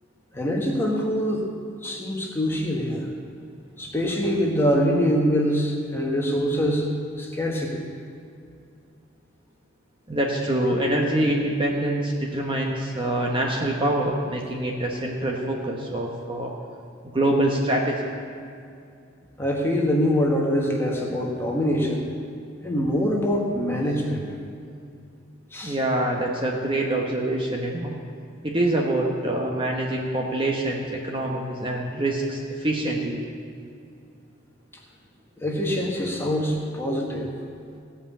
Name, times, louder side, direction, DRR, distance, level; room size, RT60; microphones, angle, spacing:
voice 1, 0.3-1.5 1.8-3.1 3.8-6.8 7.2-7.8 19.4-22.1 22.6-24.3 25.5-25.8 35.4-37.3, equal, 10° left, -2 dB, 1.7 m, -24 dB
voice 2, 10.1-16.5 17.0-18.1 25.6-27.9 28.4-33.2, right 1 dB, 25° right, -1 dB, 1.1 m, -25 dB
17.0 x 5.6 x 8.4 m, 2.4 s
head